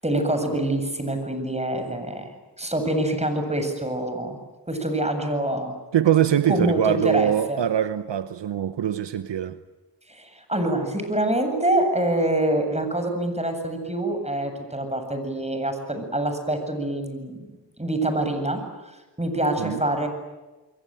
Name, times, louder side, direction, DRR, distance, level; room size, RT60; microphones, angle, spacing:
voice 1, 0.0-2.3 2.6-4.4 4.6-5.7 6.5-7.6 10.1-17.5 17.8-18.6 19.2-20.1, right 1 dB, 15° right, 8.0 m, -25 dB
voice 2, 5.9-9.6 19.6-19.8, right 10 dB, 70° right, 1.1 m, -23 dB
29.0 x 22.5 x 9.2 m
cardioid pair, 55°, 45 cm